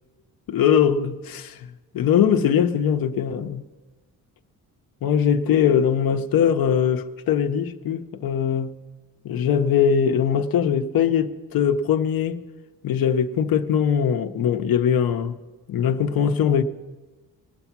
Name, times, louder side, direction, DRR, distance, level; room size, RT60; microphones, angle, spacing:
voice 1, 0.5-1.6 1.9-3.6 5.0-8.7 9.2-12.4 12.8-15.3 15.7-16.6, left 8 dB, 75° left, 0.8 m, -21 dB
20.5 x 7.0 x 5.9 m
cardioid pair, 100°, 36 cm